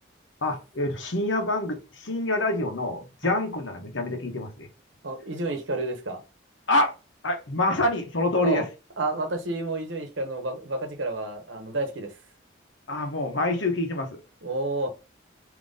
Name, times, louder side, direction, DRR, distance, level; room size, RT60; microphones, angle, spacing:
voice 1, 0.4-4.7 6.7-6.9 7.2-8.7 12.9-14.2, left 2 dB, 80° left, 1.1 m, -26 dB
voice 2, 5.0-6.2 8.4-8.6 9.0-12.1 14.4-14.9, right 2 dB, 75° right, 1.0 m, -30 dB
4.0 x 2.9 x 3.6 m
head